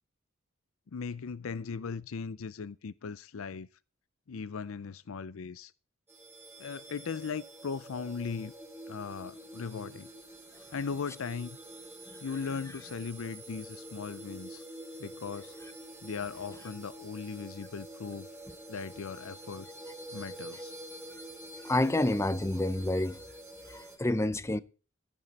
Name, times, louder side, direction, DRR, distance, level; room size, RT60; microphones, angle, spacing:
voice 1, 0.9-3.7 4.3-5.7 6.6-8.5 8.9-10.1 10.7-11.6 12.2-14.6 15.0-15.5 16.0-18.3 18.7-19.7 20.1-20.7, left 5 dB, 85° left, 0.5 m, -38 dB
sound 1, 6.1-24.0, right 1 dB, 10° right, 2.4 m, -47 dB
voice 2, 21.6-23.2 23.7-24.6, left 1 dB, 15° left, 0.6 m, -28 dB
14.0 x 11.0 x 4.1 m
head